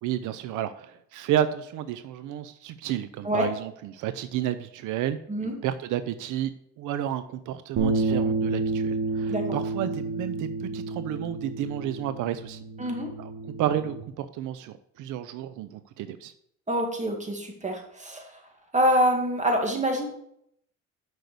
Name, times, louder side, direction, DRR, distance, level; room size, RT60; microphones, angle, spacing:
voice 1, 0.0-6.5 6.8-12.6 13.2-16.3, right 11 dB, 90° right, 12 dB, 0.6 m, -31 dB
sound 1, 7.8-14.0, right 3 dB, 70° right, 1.5 m, -30 dB
voice 2, 12.8-13.1 16.7-18.4 18.7-20.0, equal, 25° right, 2 dB, 2.3 m, -26 dB
6.5 x 6.2 x 6.8 m, 0.72 s
cardioid pair, 90°, 30 cm